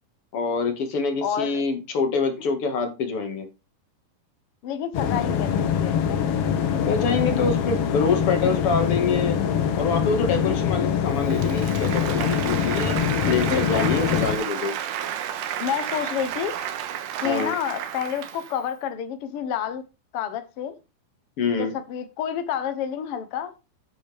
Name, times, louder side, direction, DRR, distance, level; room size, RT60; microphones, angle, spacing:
voice 1, 0.3-3.5 6.9-9.4 9.7-12.9 13.3-14.7 17.2-17.5 21.4-21.7, left 4 dB, 45° left, 2.5 m, -25 dB
voice 2, 1.2-1.6 4.6-6.2 13.5-13.9 15.6-16.6 17.2-19.8 20.1-20.8 21.6-23.5, left 8 dB, 85° left, 1.2 m, -29 dB
sound 1, 4.9-14.4, left 8 dB, 65° left, 1.5 m, -24 dB
Applause, 11.2-18.6, right 9 dB, 80° right, 2.8 m, -32 dB
10.0 x 8.5 x 3.5 m
omnidirectional pair, 4.2 m